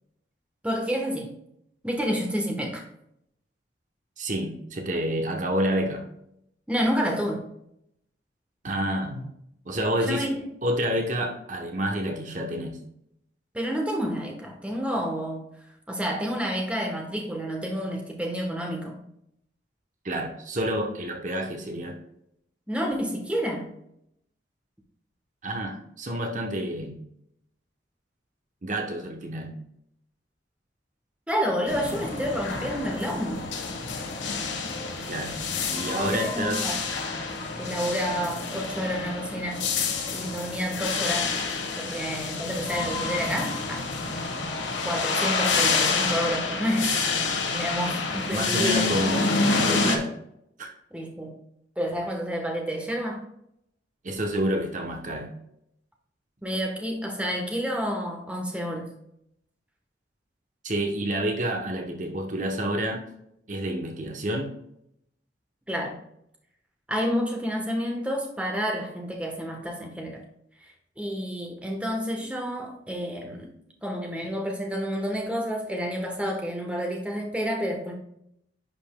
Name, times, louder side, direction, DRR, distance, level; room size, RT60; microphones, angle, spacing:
voice 1, 0.6-1.3 1.8-2.8 6.7-7.4 10.1-10.5 13.5-15.5 15.9-19.0 22.7-23.7 31.3-33.5 35.9-36.8 37.6-39.7 40.1-41.3 41.8-43.9 44.8-47.1 47.5-48.9 50.9-51.4 51.8-53.2 56.4-58.9 65.7-66.0 66.9-70.2 70.6-73.5 73.8-77.9, equal, 5° right, 1 dB, 1.1 m, -29 dB
voice 2, 4.2-6.0 8.6-9.3 9.7-10.3 10.6-12.8 20.0-22.0 25.4-26.9 28.6-29.5 35.1-35.4 35.7-36.7 41.9-42.0 48.3-50.1 50.6-50.7 54.0-55.3 60.6-63.0 63.5-64.5, right 1 dB, 40° right, 3 dB, 0.9 m, -29 dB
sound 1, 31.7-50.0, left 4 dB, 85° left, 1.3 m, -28 dB
10.5 x 5.3 x 2.2 m, 0.76 s
head